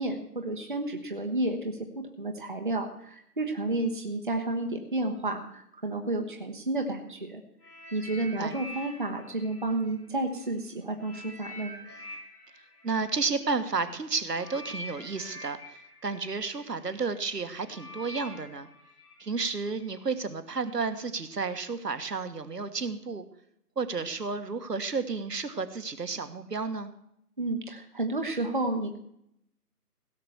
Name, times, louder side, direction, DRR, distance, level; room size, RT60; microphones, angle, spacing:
voice 1, 0.0-1.8 2.2-7.4 7.9-11.7 27.4-29.0, right 2 dB, 30° right, 4 dB, 1.0 m, -31 dB
sound 1, 7.6-10.5 11.0-20.0 20.7-20.8, left 1 dB, 70° left, 5.5 m, -46 dB
voice 2, 12.8-15.8 16.0-18.7 19.2-23.2 23.8-26.9, right 4 dB, 80° right, 10 dB, 1.5 m, -32 dB
16.5 x 6.0 x 7.0 m, 0.75 s
figure-of-eight pair, 170°, 47 cm